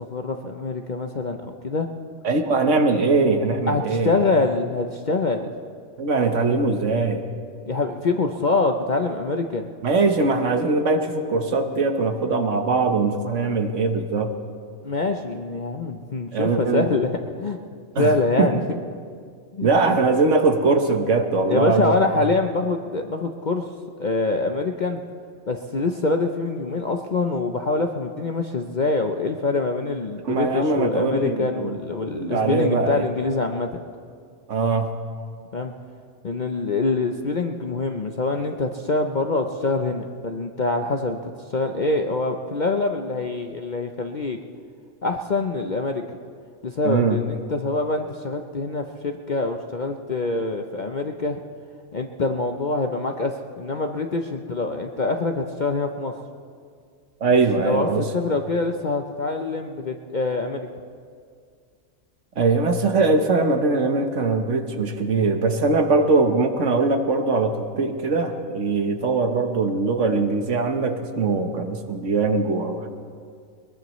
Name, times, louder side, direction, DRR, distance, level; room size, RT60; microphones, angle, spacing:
voice 1, 0.0-1.9 3.7-5.5 7.7-9.7 14.8-17.6 18.0-18.6 19.5-19.7 21.4-23.7 24.0-25.0 25.5-33.7 35.5-35.7 36.2-44.4 45.0-46.0 46.6-51.4 51.9-56.1 57.3-60.7, left 3 dB, 45° left, 4 dB, 0.6 m, -25 dB
voice 2, 2.2-4.1 6.0-7.2 9.8-14.3 16.3-16.9 17.9-18.1 18.4-18.5 19.6-22.0 30.2-31.8 32.1-33.0 34.5-34.9 46.8-47.2 57.2-58.0 62.4-72.9, right 3 dB, 60° right, 6 dB, 1.4 m, -21 dB
22.0 x 21.0 x 3.1 m, 2.2 s
omnidirectional pair, 1.4 m